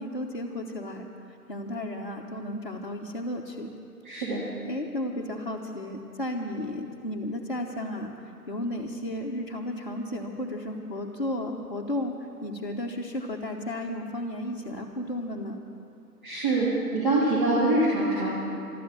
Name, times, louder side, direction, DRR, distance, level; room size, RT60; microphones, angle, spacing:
voice 1, 0.0-3.7 4.7-12.1 12.4-15.6, left 1 dB, 35° left, -4 dB, 0.9 m, -33 dB
voice 2, 4.0-4.4 16.2-16.7 16.9-18.3, right 2 dB, 30° right, -8 dB, 2.9 m, -24 dB
14.5 x 13.0 x 7.3 m, 2.7 s
figure-of-eight pair, 155°, 48 cm